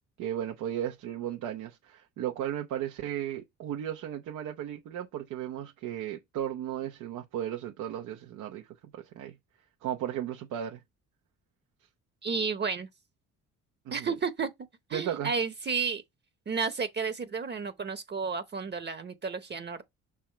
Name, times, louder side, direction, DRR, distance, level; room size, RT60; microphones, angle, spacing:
voice 1, 0.2-9.4 9.8-10.8 13.8-14.2 14.9-15.3, right 10 dB, 90° right, 0.9 m, -35 dB
voice 2, 12.2-12.9 13.9-14.5 14.9-16.0 16.5-19.8, right 5 dB, 35° right, 0.9 m, -32 dB
6.0 x 3.6 x 4.5 m
cardioid pair, 90°, 30 cm